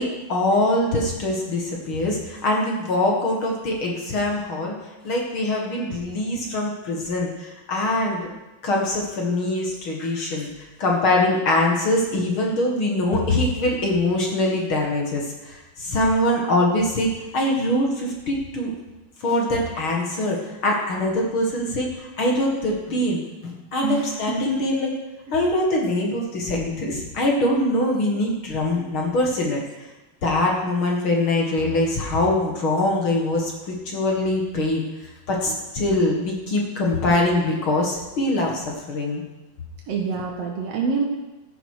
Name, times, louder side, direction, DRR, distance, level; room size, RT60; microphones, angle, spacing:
voice 1, 0.0-4.7 5.0-8.2 8.6-10.5 10.8-17.1 17.3-18.7 19.2-20.4 20.6-24.9 25.3-29.6 30.2-34.8 35.3-39.2, left 1 dB, 45° left, -1 dB, 2.0 m, -23 dB
voice 2, 23.8-24.2 35.5-35.6 39.9-41.0, right 5 dB, 60° right, 0 dB, 1.7 m, -26 dB
14.5 x 11.0 x 4.9 m, 1.1 s
omnidirectional pair, 4.4 m